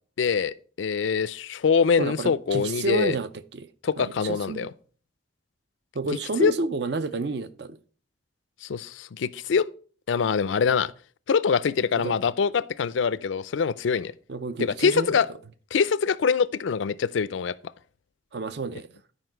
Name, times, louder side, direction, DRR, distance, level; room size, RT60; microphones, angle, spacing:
voice 1, 0.2-3.2 3.8-4.7 6.4-6.5 8.6-9.7 10.1-10.9 11.3-14.1 14.6-15.3 15.7-17.5, left 6 dB, 90° left, 0.4 m, -24 dB
voice 2, 2.0-3.7 4.0-4.7 5.9-7.8 12.0-12.1 14.3-15.1 18.3-18.9, right 3 dB, 60° right, 0.5 m, -30 dB
9.8 x 5.3 x 4.5 m
head